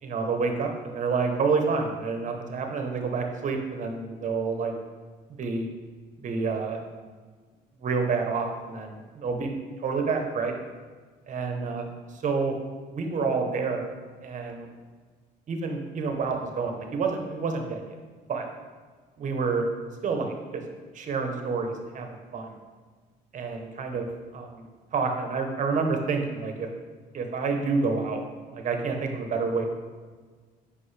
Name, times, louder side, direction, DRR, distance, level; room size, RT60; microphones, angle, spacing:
voice 1, 0.0-4.7 5.4-5.7 6.2-6.8 7.8-9.6 9.8-10.5 11.3-11.8 12.1-12.5 12.9-13.8 14.2-14.7 15.5-17.8 18.3-18.5 19.2-19.7 20.0-20.6 20.9-22.6 23.3-24.1 24.3-24.7 24.9-26.7 27.1-28.2 28.5-29.7, right 4 dB, 45° right, 4 dB, 1.1 m, -28 dB
7.7 x 5.2 x 3.4 m, 1.5 s
cardioid pair, 110°, 17 cm